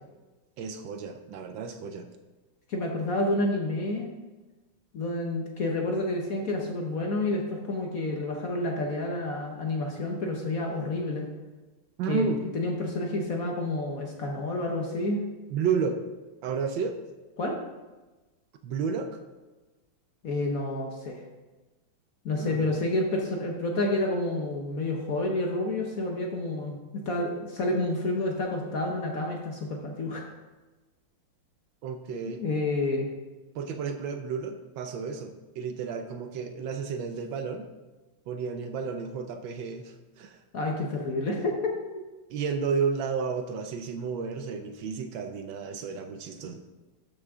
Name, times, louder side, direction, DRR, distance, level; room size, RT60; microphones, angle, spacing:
voice 1, 0.6-2.1 12.0-12.4 15.5-16.0 16.4-17.0 18.6-19.2 22.4-22.7 31.8-32.4 33.5-37.7 38.3-40.4 42.3-46.6, right 6 dB, 70° right, 6 dB, 1.3 m, -32 dB
voice 2, 2.7-4.1 4.9-11.3 12.1-15.2 17.4-17.6 20.2-21.2 22.2-26.8 27.0-30.2 32.3-33.1 40.5-41.8, left 2 dB, 55° left, 1 dB, 1.1 m, -29 dB
12.0 x 6.1 x 3.6 m, 1.2 s
omnidirectional pair, 2.3 m